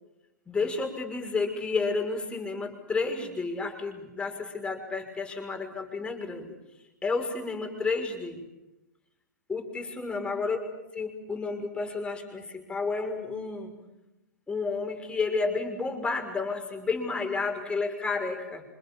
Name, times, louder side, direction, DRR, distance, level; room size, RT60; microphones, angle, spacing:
voice 1, 0.5-6.6 7.0-8.4 9.5-10.6 10.9-13.7 14.5-18.7, left 4 dB, 10° left, 3 dB, 6.0 m, -31 dB
28.5 x 27.0 x 7.3 m, 0.95 s
hypercardioid pair, 120°, 10 cm